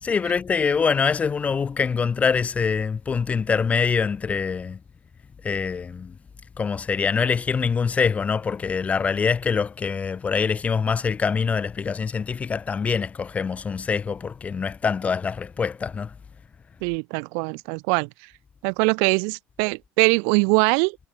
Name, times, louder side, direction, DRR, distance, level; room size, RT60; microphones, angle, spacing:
voice 1, 0.0-4.8 5.4-6.2 6.6-16.1, left 5 dB, 30° left, 1.0 m, -24 dB
voice 2, 16.8-18.1 18.6-21.0, right 40 dB or more, 75° right, 2.7 m, -22 dB
supercardioid pair, 90°, 5 cm